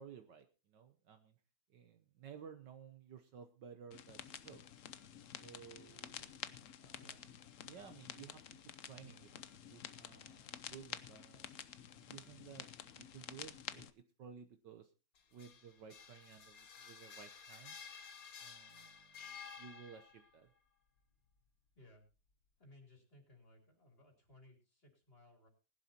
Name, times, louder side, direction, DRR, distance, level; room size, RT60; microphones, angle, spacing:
voice 1, 0.0-1.4 1.7-4.6 5.4-6.4 6.8-7.2 7.6-8.4 8.8-9.4 9.7-11.5 12.0-12.7 12.9-14.9 15.3-17.8 18.4-19.3 19.6-20.5, right 7 dB, 65° right, 8 dB, 1.4 m, -56 dB
sound 1, 3.9-13.9, left 9 dB, 75° left, 0.7 m, -50 dB
voice 2, 6.9-7.3 21.8-22.0 22.6-25.5, left 2 dB, 25° left, 3 dB, 3.6 m, -62 dB
sound 2, 15.2-20.3, left 6 dB, 50° left, 1.5 m, -53 dB
20.0 x 11.0 x 2.9 m, 0.31 s
omnidirectional pair, 2.3 m